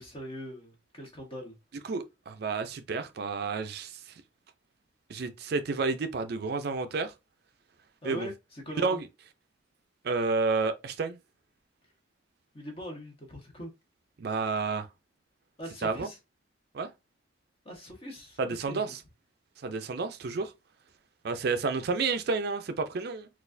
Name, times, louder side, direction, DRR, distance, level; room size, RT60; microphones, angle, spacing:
voice 1, 0.0-1.6 8.0-9.0 12.5-13.7 15.6-16.2 17.6-18.9, equal, 30° left, 1.1 m, -42 dB
voice 2, 1.9-4.1 5.1-7.1 8.0-8.3 8.8-9.0 10.0-11.2 14.2-14.9 15.8-16.1 16.7-16.9 18.4-19.0 19.6-20.5 21.2-23.3, right 4 dB, 55° right, 0.4 m, -30 dB
4.1 x 2.4 x 2.5 m
head